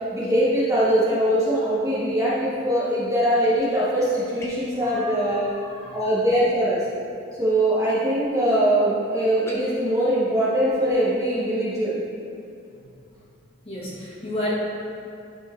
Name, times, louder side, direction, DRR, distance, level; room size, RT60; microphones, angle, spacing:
voice 1, 0.1-5.5 5.9-6.8 7.4-12.0, right 1 dB, 15° right, -9 dB, 1.4 m, -22 dB
sound 1, 4.4-4.8 9.4-9.6, equal, 15° left, 0.7 m, -39 dB
voice 2, 4.7-6.1 12.7-12.8 13.6-14.5, equal, 30° left, -7 dB, 1.4 m, -33 dB
10.5 x 4.6 x 3.3 m, 2.6 s
head